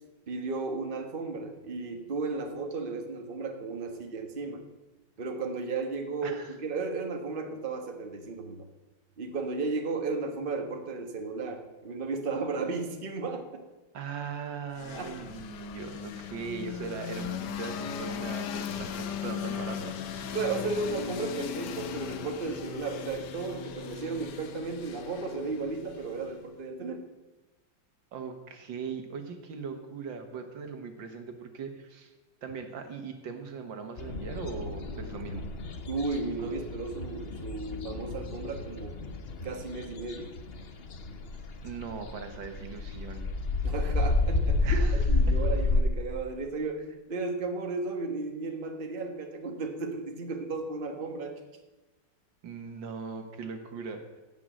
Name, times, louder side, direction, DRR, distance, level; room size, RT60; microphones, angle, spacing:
voice 1, 0.3-4.6 5.2-8.6 9.2-13.6 14.9-15.3 20.3-27.0 35.9-39.0 39.4-40.3 43.6-51.4, right 3 dB, 30° right, 4 dB, 1.4 m, -34 dB
voice 2, 6.2-6.6 13.9-20.0 28.1-32.1 32.4-35.5 41.6-43.3 44.7-45.4 52.4-54.0, right 5 dB, 85° right, 6 dB, 2.1 m, -39 dB
sound 1, 14.7-26.5, left 8 dB, 70° left, 1.4 m, -38 dB
sound 2, 34.0-45.8, left 2 dB, 45° left, 0.9 m, -30 dB
16.5 x 5.8 x 7.5 m, 1.1 s
omnidirectional pair, 2.0 m